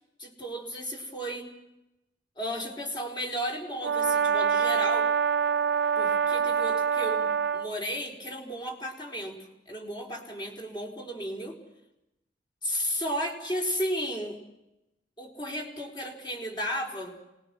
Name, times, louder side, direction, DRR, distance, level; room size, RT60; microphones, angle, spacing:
voice 1, 0.2-1.5 2.4-5.1 5.9-11.6 12.6-14.4 15.2-17.1, equal, 25° left, 0 dB, 4.4 m, -34 dB
Brass instrument, 3.8-7.7, right 6 dB, 60° right, 1.0 m, -25 dB
26.5 x 21.0 x 6.2 m, 0.90 s
head